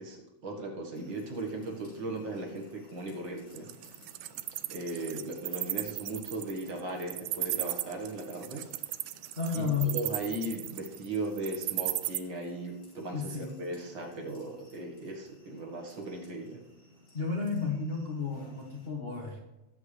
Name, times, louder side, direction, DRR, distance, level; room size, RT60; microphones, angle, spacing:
voice 1, 0.0-3.7 4.7-8.7 9.5-16.6, right 2 dB, 45° right, 0 dB, 2.0 m, -37 dB
sound 1, 0.9-18.9, left 1 dB, 45° left, 6.1 m, -59 dB
Wild animals, 3.6-12.2, right 16 dB, 80° right, 1.7 m, -35 dB
voice 2, 9.4-9.9 13.1-13.5 17.1-19.4, left 5 dB, 75° left, -1 dB, 0.5 m, -32 dB
20.0 x 7.6 x 3.3 m, 0.99 s
omnidirectional pair, 3.3 m